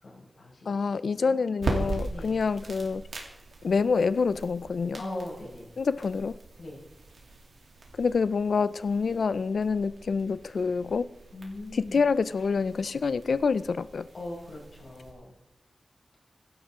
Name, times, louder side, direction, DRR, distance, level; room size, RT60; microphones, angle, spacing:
voice 1, 0.0-1.4 2.1-2.4 5.0-5.7 6.6-6.8 11.3-12.1 14.1-15.3, left 2 dB, 75° left, -4 dB, 5.4 m, -40 dB
voice 2, 0.7-3.0 3.6-5.0 5.8-6.4 8.0-11.1 11.7-14.1, left 5 dB, 90° left, 16 dB, 0.4 m, -27 dB
sound 1, 1.6-15.1, right 3 dB, 85° right, 2.9 m, -40 dB
16.5 x 12.0 x 3.7 m, 0.98 s
wide cardioid pair, 100°, 0 cm